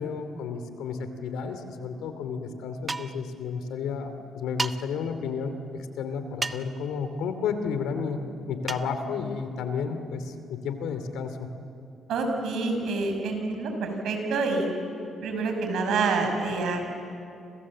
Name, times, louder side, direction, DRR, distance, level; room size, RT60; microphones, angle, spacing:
voice 1, 0.0-11.5, left 5 dB, 90° left, 9 dB, 2.6 m, -32 dB
sound 1, 2.9-3.2 4.6-4.8 6.4-6.8 8.7-8.9, right 3 dB, 25° right, 0.9 m, -31 dB
voice 2, 12.1-14.7 15.2-16.9, right 3 dB, 75° right, 4 dB, 6.0 m, -27 dB
30.0 x 26.5 x 7.6 m, 2.6 s
cardioid pair, 90°, 0 cm